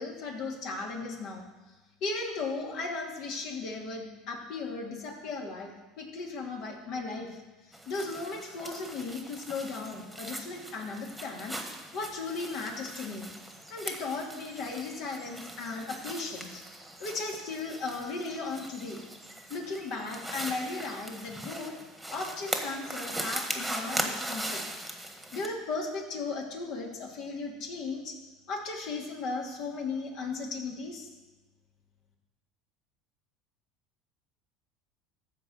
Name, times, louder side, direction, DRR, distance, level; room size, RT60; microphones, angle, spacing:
voice 1, 0.0-1.4 2.0-5.7 6.0-7.4 7.7-13.3 13.7-16.6 17.0-19.0 19.5-21.7 22.1-24.6 25.3-28.2 28.5-31.1, left 3 dB, 60° left, 1 dB, 2.4 m, -36 dB
sound 1, 7.7-25.5, right 1 dB, ahead, 1.5 m, -39 dB
13.0 x 4.6 x 7.8 m, 1.2 s
supercardioid pair, 105°, 0 cm